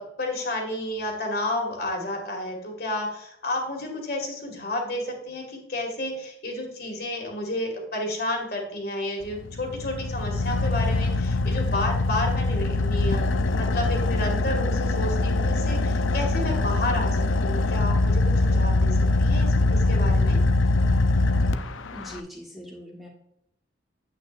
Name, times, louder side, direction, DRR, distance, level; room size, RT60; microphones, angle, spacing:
voice 1, 0.0-20.4, left 1 dB, 50° left, 1 dB, 2.2 m, -31 dB
Car / Idling, 9.2-22.2, left 2 dB, 85° left, 0.6 m, -23 dB
voice 2, 21.6-23.1, equal, ahead, -1 dB, 1.4 m, -42 dB
9.0 x 8.7 x 2.6 m, 0.78 s
head